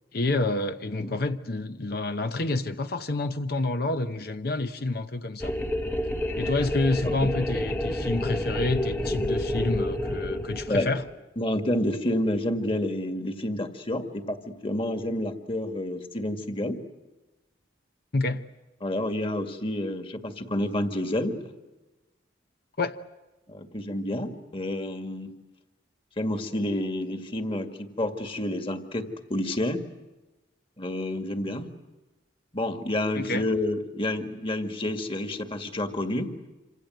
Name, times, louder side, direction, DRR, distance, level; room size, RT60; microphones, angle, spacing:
voice 1, 0.1-5.5 6.4-11.0 18.1-18.4 22.8-23.0 33.1-33.5, left 2 dB, 55° left, 0.9 m, -28 dB
sound 1, 5.4-11.1, left 1 dB, 10° left, 1.6 m, -29 dB
voice 2, 11.4-16.8 18.8-21.5 23.5-25.3 26.2-29.8 30.8-31.7 32.5-36.3, left 1 dB, 30° left, 2.1 m, -29 dB
27.5 x 26.0 x 8.0 m
head